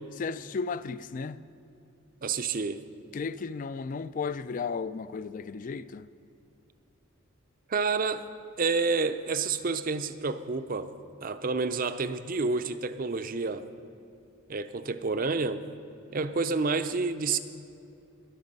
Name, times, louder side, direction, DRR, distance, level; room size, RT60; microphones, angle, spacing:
voice 1, 0.2-1.4 3.1-6.1, left 5 dB, 40° left, 0.3 m, -34 dB
voice 2, 2.2-2.8 7.7-8.2 8.6-10.9 11.2-13.7 14.5-15.6 16.1-17.4, right 4 dB, 40° right, 0.5 m, -29 dB
21.5 x 8.0 x 5.3 m
head